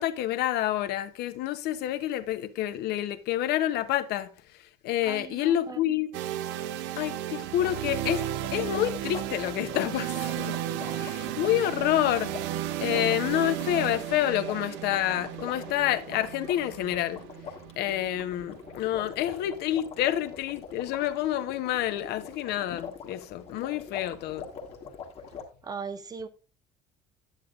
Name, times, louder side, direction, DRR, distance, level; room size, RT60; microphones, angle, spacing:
voice 1, 0.0-4.3 4.8-6.1 7.0-8.2 8.5-10.6 10.9-12.3 12.8-17.2 17.8-24.5, left 13 dB, 55° left, 0.8 m, -28 dB
voice 2, 5.0-5.8 25.6-26.3, right 5 dB, 20° right, 0.5 m, -38 dB
sound 1, 6.1-20.0, right 12 dB, 65° right, 0.6 m, -34 dB
sound 2, 7.6-25.4, left 6 dB, 30° left, 1.4 m, -43 dB
10.0 x 8.6 x 2.4 m
cardioid pair, 180°, 20 cm